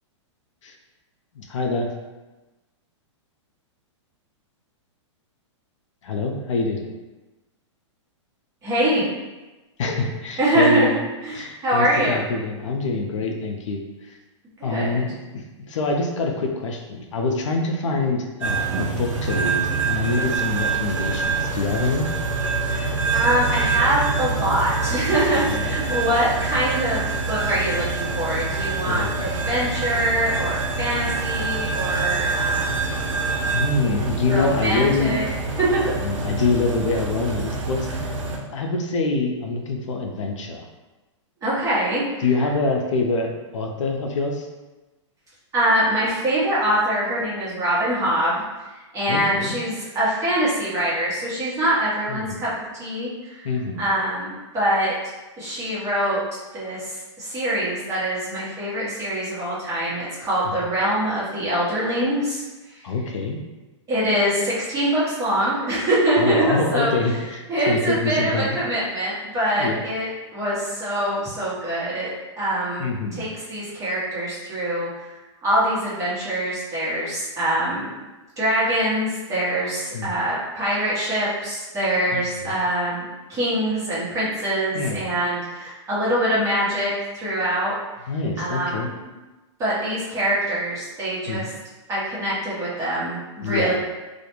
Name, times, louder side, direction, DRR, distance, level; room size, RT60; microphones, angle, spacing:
voice 1, 1.4-1.9 6.0-6.8 9.8-10.9 11.3-13.8 14.1-14.2 14.6-22.1 25.3-25.8 28.9-29.2 33.5-35.2 36.0-37.9 38.5-40.7 42.2-44.5 49.1-49.6 52.1-52.4 53.4-53.8 62.8-63.4 66.2-68.6 69.6-69.8 72.8-73.2 79.9-80.2 82.1-82.6 84.7-85.1 88.1-88.9 91.3-91.5 93.4-93.7, left 3 dB, 80° left, 2 dB, 0.5 m, -25 dB
voice 2, 8.6-9.1 10.4-11.0 11.2-12.2 14.6-15.0 17.8-18.0 22.7-32.9 34.3-35.3 35.6-35.9 41.4-42.2 45.5-48.4 48.7-53.5 53.8-54.9 55.4-56.2 56.5-62.4 63.9-66.4 66.7-67.2 67.5-72.1 72.4-75.1 75.4-78.0 78.4-87.7 88.4-89.1 89.6-91.5 91.9-93.7, right 1 dB, 20° right, -9 dB, 0.9 m, -24 dB
sound 1, 18.4-38.4, right 4 dB, 85° right, 0.5 m, -26 dB
2.4 x 2.1 x 2.9 m, 1.1 s
hypercardioid pair, 140°, 16 cm